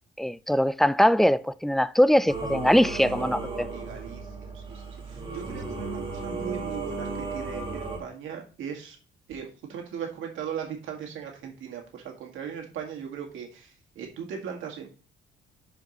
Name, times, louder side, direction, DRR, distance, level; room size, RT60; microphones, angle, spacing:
voice 1, 0.2-3.7, equal, ahead, 0.3 m, -22 dB
Singing / Musical instrument, 2.3-8.0, right 3 dB, 25° right, 1.8 m, -35 dB
voice 2, 3.3-9.0 9.3-14.9, right 7 dB, 80° right, 1.9 m, -39 dB
10.5 x 5.0 x 3.0 m
cardioid pair, 90°, 20 cm